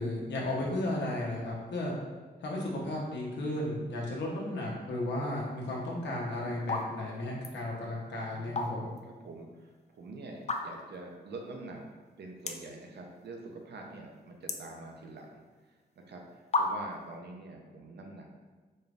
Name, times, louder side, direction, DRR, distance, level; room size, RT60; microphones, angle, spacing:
voice 1, 0.0-1.9 2.4-8.9, left 1 dB, 90° left, -3 dB, 0.9 m, -34 dB
sound 1, 5.8-6.1 6.6-6.9 7.2-7.6 8.3-9.0 9.4-9.5 10.4-11.0 11.5-11.6 11.8-11.9 12.4-12.8 13.2-13.6 13.9-15.3 16.0-16.1 16.5-17.1, left 3 dB, 40° left, 0.4 m, -33 dB
voice 2, 8.2-15.4 16.1-18.3, right 2 dB, 70° right, 1 dB, 0.7 m, -46 dB
4.3 x 3.4 x 2.5 m, 1.3 s
cardioid pair, 75°, 18 cm